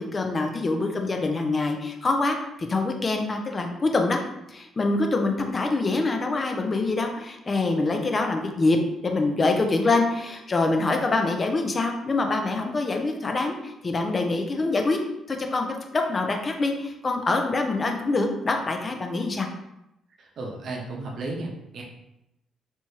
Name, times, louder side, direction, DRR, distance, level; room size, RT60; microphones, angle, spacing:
voice 1, 0.0-4.2 4.5-8.8 9.0-15.0 15.3-15.7 15.9-19.5, left 3 dB, 35° left, 4 dB, 0.6 m, -25 dB
voice 2, 20.2-21.8, right 2 dB, 60° right, -1 dB, 0.8 m, -34 dB
3.4 x 2.9 x 2.8 m, 0.86 s
supercardioid pair, 60°, 0 cm